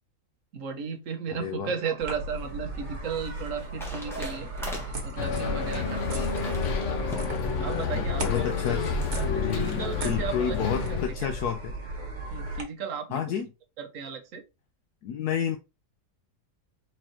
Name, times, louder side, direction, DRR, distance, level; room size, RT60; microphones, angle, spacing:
voice 1, 0.5-4.5 4.9-6.7 7.6-8.7 9.2-10.6 10.9-11.3 12.3-13.2 13.8-14.4, right 6 dB, 60° right, 1.1 m, -35 dB
voice 2, 1.3-1.7 7.9-9.0 9.3-11.7 13.1-13.5 15.0-15.6, left 8 dB, 75° left, 1.2 m, -30 dB
sound 1, 1.9-9.3, equal, ahead, 1.2 m, -44 dB
sound 2, 2.0-12.6, right 1 dB, 35° right, 1.1 m, -36 dB
Bus, 5.2-11.1, left 5 dB, 60° left, 1.0 m, -29 dB
4.4 x 4.1 x 2.8 m
omnidirectional pair, 1.7 m